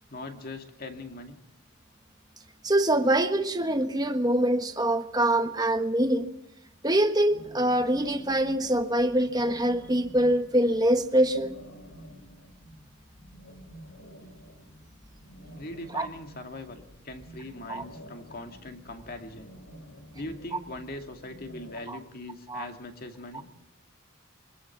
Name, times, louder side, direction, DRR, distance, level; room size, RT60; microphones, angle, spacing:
voice 1, 0.1-1.4 15.5-19.5 20.1-23.5, left 2 dB, 45° left, 2.4 m, -41 dB
voice 2, 2.6-6.3 6.8-11.6 15.9-16.1 17.7-17.8 21.9-22.0 22.5-22.7, right 1 dB, 20° right, 1.3 m, -24 dB
sound 1, 7.3-21.8, equal, 65° left, 3.4 m, -50 dB
23.5 x 22.0 x 6.1 m
head